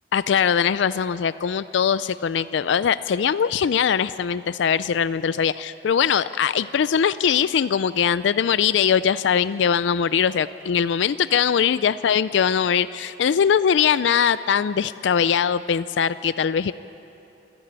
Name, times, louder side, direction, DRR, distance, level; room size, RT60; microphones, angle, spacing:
voice 1, 0.1-16.7, left 7 dB, 70° left, 15 dB, 0.4 m, -21 dB
28.5 x 11.0 x 8.8 m, 2.8 s
head